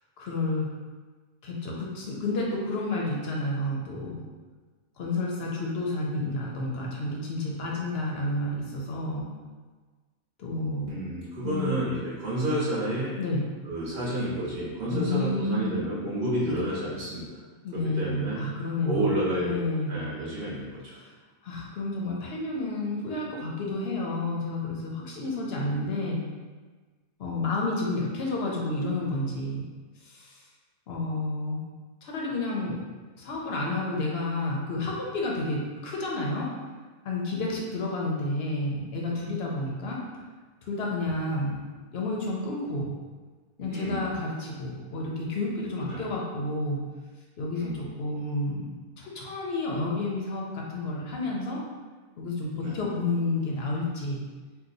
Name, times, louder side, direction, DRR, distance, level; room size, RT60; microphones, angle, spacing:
voice 1, 0.2-0.7 1.4-4.2 5.0-9.3 10.4-10.9 11.4-11.7 13.2-13.4 14.9-15.8 17.6-20.1 21.0-21.1 21.4-26.2 27.2-29.7 30.0-30.4 30.9-31.6 32.0-32.8 33.2-36.5 37.0-40.0 40.7-41.6 41.9-42.9 43.6-46.8 47.4-48.7 49.0-51.6 52.2-54.2, left 2 dB, 60° left, -2 dB, 0.7 m, -30 dB
voice 2, 10.9-13.2 13.6-17.4 17.7-18.4 18.8-19.6 19.9-21.0 43.7-44.1 45.9-46.1 47.5-47.8 52.6-52.8, right 1 dB, 50° right, -8 dB, 0.9 m, -30 dB
2.8 x 2.1 x 3.8 m, 1.4 s
omnidirectional pair, 1.4 m